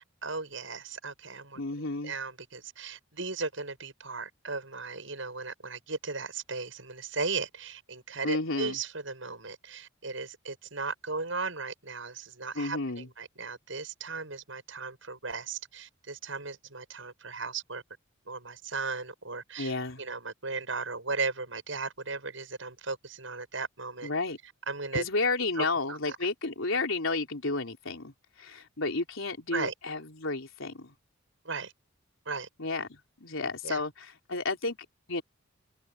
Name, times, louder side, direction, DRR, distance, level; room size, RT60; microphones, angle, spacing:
voice 1, 0.0-1.6 2.0-17.8 18.3-24.1 24.7-25.1 25.6-26.2 29.5-29.7 31.4-31.7 32.3-32.5 33.6-33.8, right 4 dB, 75° right, 7.3 m, -36 dB
voice 2, 1.6-2.1 8.2-8.8 12.5-13.1 19.6-20.0 24.0-24.4 24.9-28.1 28.4-30.9 32.6-34.8 35.1-35.2, left 3 dB, 90° left, 3.7 m, -32 dB
head